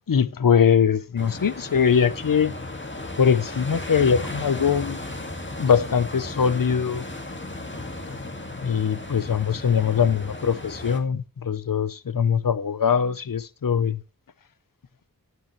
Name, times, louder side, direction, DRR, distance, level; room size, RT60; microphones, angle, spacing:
voice 1, 0.1-2.5 3.2-5.0 5.6-7.0 8.6-14.0, left 7 dB, 65° left, 0.8 m, -22 dB
sound 1, 1.2-11.0, left 2 dB, 30° left, 2.0 m, -35 dB
12.0 x 9.2 x 3.2 m
wide cardioid pair, 45°, 36 cm